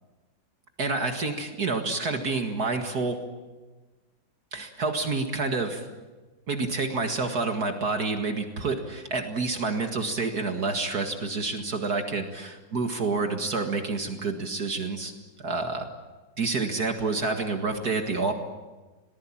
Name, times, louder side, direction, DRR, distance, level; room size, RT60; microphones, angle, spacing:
voice 1, 0.8-3.2 4.5-5.8 6.5-15.1 15.4-15.9 16.4-18.3, right 3 dB, 55° right, 5 dB, 2.3 m, -28 dB
26.0 x 19.5 x 8.8 m, 1.2 s
omnidirectional pair, 2.0 m